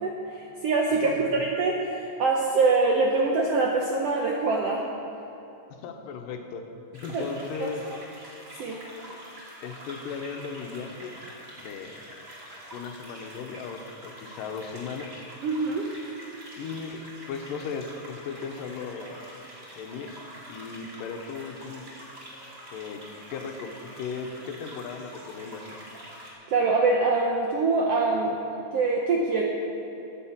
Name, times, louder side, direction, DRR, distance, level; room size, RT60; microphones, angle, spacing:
voice 1, 0.0-4.9 7.1-7.3 7.6-7.7 8.6-8.8 15.4-15.9 26.5-28.4 28.7-29.4, right 3 dB, 70° right, -1 dB, 1.4 m, -24 dB
voice 2, 1.0-1.4 5.8-6.6 7.0-7.8 9.6-11.2 11.6-12.0 12.7-15.2 16.6-19.2 19.8-20.2 20.5-21.9 22.7-23.0 23.3-25.9, left 5 dB, 85° left, 5 dB, 2.5 m, -37 dB
sound 1, 6.9-26.3, equal, 25° right, 2.3 m, -45 dB
10.0 x 9.3 x 7.3 m, 2.9 s
omnidirectional pair, 3.9 m